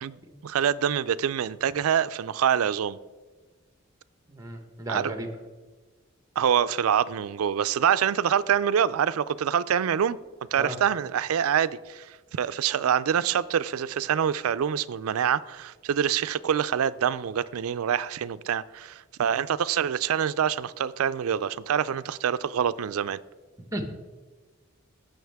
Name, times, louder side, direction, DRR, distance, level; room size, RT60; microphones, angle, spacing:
voice 1, 0.4-3.0 4.9-5.1 6.4-10.2 10.5-12.1 12.3-23.2, right 8 dB, 90° right, 0.4 m, -25 dB
voice 2, 4.3-5.3 10.5-10.8 23.7-23.8, right 1 dB, 15° right, 1.1 m, -34 dB
16.0 x 6.4 x 3.5 m
head